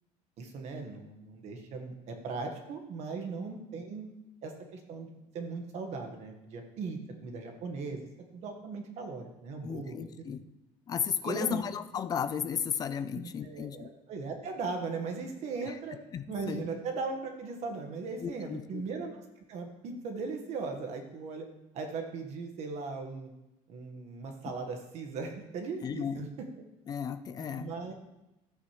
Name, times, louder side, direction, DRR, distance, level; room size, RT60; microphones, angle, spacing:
voice 1, 0.4-4.0 4.4-8.1 8.3-10.1 11.2-11.6 13.1-16.0 16.3-21.5 21.7-23.3 23.7-26.3 27.4-27.9, right 4 dB, 55° right, 4 dB, 1.5 m, -38 dB
voice 2, 9.6-10.4 10.9-13.9 15.6-15.8 16.1-16.7 18.2-18.8 25.8-26.3 26.9-27.7, left 7 dB, 30° left, 11 dB, 0.5 m, -34 dB
13.5 x 8.9 x 3.2 m, 0.91 s
cardioid pair, 165°, 14 cm